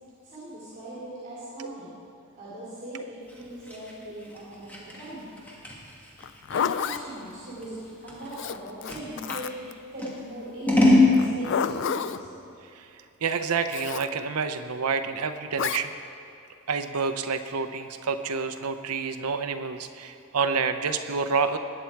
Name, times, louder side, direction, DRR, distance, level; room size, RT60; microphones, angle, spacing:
voice 1, 0.2-1.9 2.4-3.0 3.3-5.2 6.5-9.5 9.9-12.3, right 1 dB, 40° right, -9 dB, 3.6 m, -39 dB
Scissors, 3.3-9.5 10.0-11.1, left 2 dB, 5° left, 1.9 m, -25 dB
Zipper (clothing), 6.2-7.0 8.3-9.7 11.1-12.2 13.7-14.1 15.6-15.8, left 7 dB, 60° left, 0.4 m, -30 dB
voice 2, 13.2-15.9 16.7-21.6, right 5 dB, 90° right, 8 dB, 0.7 m, -28 dB
19.5 x 8.9 x 4.6 m, 2.6 s
head